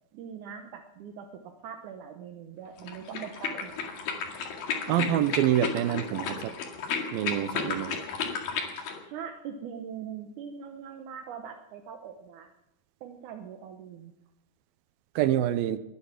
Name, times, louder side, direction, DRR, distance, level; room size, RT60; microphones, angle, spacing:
voice 1, 0.1-3.8 9.1-12.5 13.0-14.1, right 7 dB, 70° right, 5 dB, 2.2 m, -42 dB
sound 1, 2.8-9.0, left 6 dB, 85° left, 4.0 m, -33 dB
voice 2, 4.9-6.5 7.1-8.0 15.2-15.8, right 12 dB, 85° right, 13 dB, 2.6 m, -26 dB
21.5 x 10.5 x 6.0 m, 0.90 s
omnidirectional pair, 4.2 m